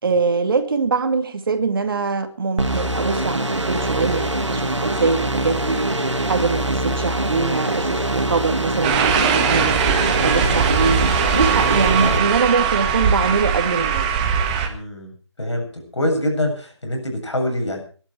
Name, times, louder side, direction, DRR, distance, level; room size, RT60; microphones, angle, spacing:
voice 1, 0.0-5.9 6.3-9.8 10.2-11.0 11.3-14.1, right 4 dB, 50° right, 2.4 m, -23 dB
sound 1, 2.6-12.2, right 1 dB, 85° right, 2.7 m, -23 dB
sound 2, 8.8-14.7, right 7 dB, 15° right, 1.6 m, -20 dB
voice 2, 11.9-12.3 14.6-15.7 15.9-17.8, left 1 dB, 70° left, 7.5 m, -25 dB
21.5 x 11.5 x 4.8 m
figure-of-eight pair, 155°, 15 cm